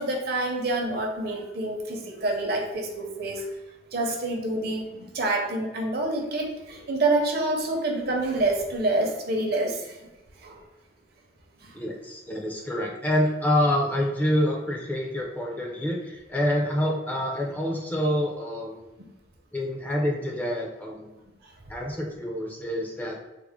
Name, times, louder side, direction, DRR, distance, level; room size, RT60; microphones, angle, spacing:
voice 1, 0.0-3.5 3.9-10.1 10.4-10.6 11.6-11.8, right 2 dB, 55° right, 1 dB, 0.6 m, -27 dB
voice 2, 11.7-18.8 19.5-21.2 21.7-23.2, left 1 dB, 10° left, -2 dB, 0.4 m, -27 dB
3.6 x 2.0 x 3.5 m, 1.0 s
head